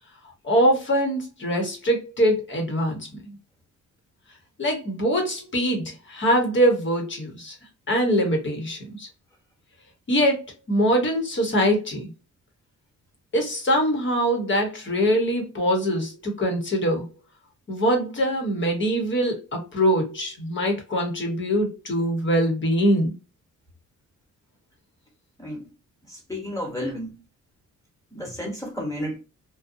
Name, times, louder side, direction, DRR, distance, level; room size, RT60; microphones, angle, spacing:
voice 1, 0.4-3.4 4.6-7.5 7.9-9.1 10.1-12.1 13.3-17.1 17.7-23.1, equal, 40° left, 1.0 m, -23 dB
voice 2, 25.4-25.7 26.1-27.2 28.1-29.2, equal, 10° left, 1.2 m, -32 dB
2.6 x 2.2 x 2.6 m
cardioid pair, 125°, 30 cm